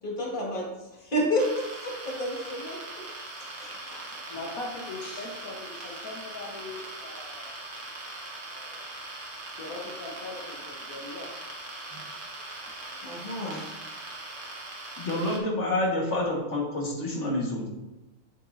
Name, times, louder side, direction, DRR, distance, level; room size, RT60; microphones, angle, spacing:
voice 1, 0.0-0.7 1.0-1.4 1.8-2.8 3.4-4.2 13.0-13.6, equal, 35° left, -4 dB, 2.0 m, -30 dB
sound 1, 1.4-15.4, right 2 dB, 40° right, 1.2 m, -41 dB
voice 2, 3.7-7.6 8.4-8.8 9.6-11.3 13.5-13.9, left 2 dB, 80° left, -2 dB, 1.5 m, -41 dB
voice 3, 15.0-17.7, left 1 dB, 55° left, -2 dB, 1.8 m, -28 dB
7.7 x 7.4 x 2.6 m, 1.0 s
omnidirectional pair, 1.5 m